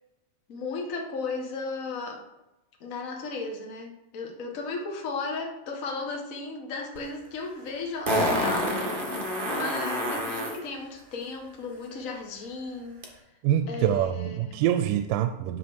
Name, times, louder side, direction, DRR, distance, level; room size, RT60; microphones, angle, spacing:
voice 1, 0.5-2.2 2.8-13.0 13.7-14.6, left 3 dB, 45° left, 1 dB, 1.0 m, -35 dB
Fart, 7.0-7.1 8.1-10.6 13.0-13.1, equal, 35° right, 0.7 m, -27 dB
voice 2, 13.4-15.6, right 11 dB, 90° right, 9 dB, 2.2 m, -25 dB
10.0 x 5.0 x 6.3 m, 0.95 s
omnidirectional pair, 3.7 m